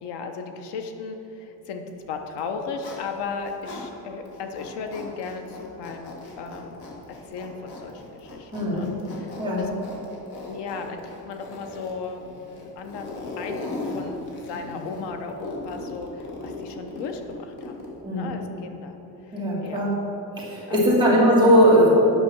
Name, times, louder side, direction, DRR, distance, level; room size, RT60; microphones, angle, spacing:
voice 1, 0.0-6.9 7.3-9.7 10.5-12.3 12.6-13.6 13.8-17.8 18.1-19.0 19.3-20.0 20.7-21.3, left 5 dB, 85° left, 5 dB, 1.0 m, -36 dB
Zipper (clothing), 2.3-3.9 4.3-18.0, left 2 dB, 65° left, 1.7 m, -38 dB
voice 2, 8.5-8.9 9.4-9.7 18.0-18.3 19.3-19.9 20.3-21.9, equal, 10° right, -7 dB, 2.2 m, -19 dB
9.1 x 5.5 x 6.2 m, 3.0 s
cardioid pair, 160°, 40 cm